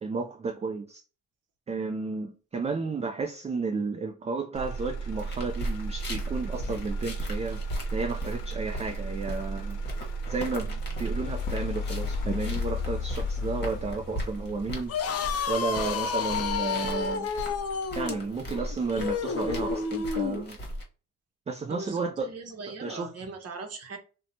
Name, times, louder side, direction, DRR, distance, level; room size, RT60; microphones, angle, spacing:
voice 1, 0.0-1.0 1.7-9.8 10.3-15.0 15.5-17.3 17.9-20.6 21.5-22.3 22.8-23.1, right 4 dB, 20° right, 0.4 m, -32 dB
Motor vehicle (road), 4.5-18.6 19.0-19.5, equal, 85° left, 0.7 m, -35 dB
sound 1, 5.2-20.8, equal, 35° left, 1.0 m, -38 dB
sound 2, 14.9-20.4, left 6 dB, 55° left, 0.5 m, -30 dB
voice 2, 21.7-24.0, right 3 dB, 55° right, 0.8 m, -40 dB
2.8 x 2.2 x 2.6 m
cardioid pair, 90°, 30 cm